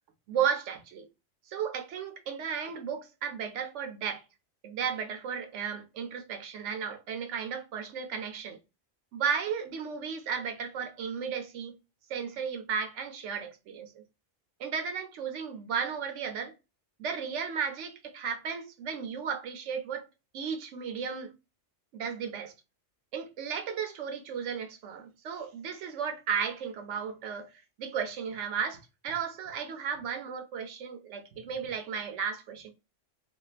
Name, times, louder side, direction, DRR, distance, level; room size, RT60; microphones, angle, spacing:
voice 1, 0.3-1.1 1.5-4.2 4.6-8.6 9.1-11.7 12.1-13.9 14.6-16.5 17.0-20.0 20.3-21.3 21.9-22.5 23.1-27.5 27.8-32.7, right 7 dB, 70° right, 1.0 m, -34 dB
3.5 x 2.2 x 2.4 m
omnidirectional pair, 1.3 m